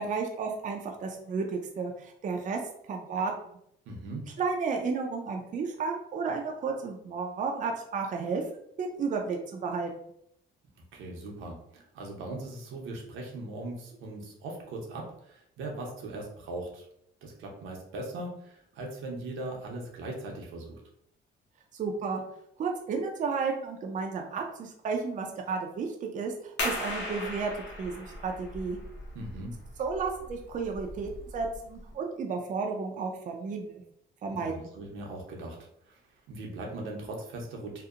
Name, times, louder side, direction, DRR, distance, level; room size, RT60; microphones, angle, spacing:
voice 1, 0.0-2.6 2.9-3.6 4.4-8.4 8.8-9.9 21.7-22.2 22.6-27.5 27.8-28.8 29.8-33.8 34.2-34.5, right 4 dB, 40° right, 2 dB, 0.4 m, -32 dB
voice 2, 3.9-4.3 10.9-16.9 17.2-20.8 29.1-29.5 34.3-35.6 35.8-36.0 36.3-37.8, right 2 dB, 85° right, 0 dB, 0.7 m, -39 dB
sound 1, 26.6-31.9, left 1 dB, 70° left, 0.8 m, -38 dB
2.7 x 2.0 x 2.4 m, 0.72 s
cardioid pair, 90°, 20 cm